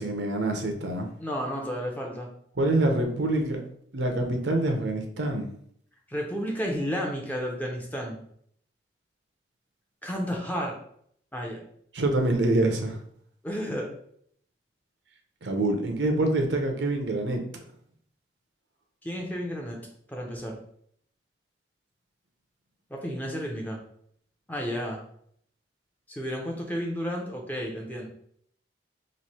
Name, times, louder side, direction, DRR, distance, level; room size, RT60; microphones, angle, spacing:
voice 1, 0.0-1.1 2.6-3.6 3.9-5.5 11.9-13.0 15.4-17.4, right 2 dB, 85° right, 4 dB, 0.7 m, -26 dB
voice 2, 1.2-2.3 6.1-8.2 10.0-10.8 11.3-11.6 13.4-13.9 19.0-19.8 20.1-20.6 22.9-23.8 24.5-25.0 26.1-28.1, equal, 10° left, 0 dB, 0.6 m, -32 dB
3.1 x 2.6 x 4.2 m, 0.66 s
head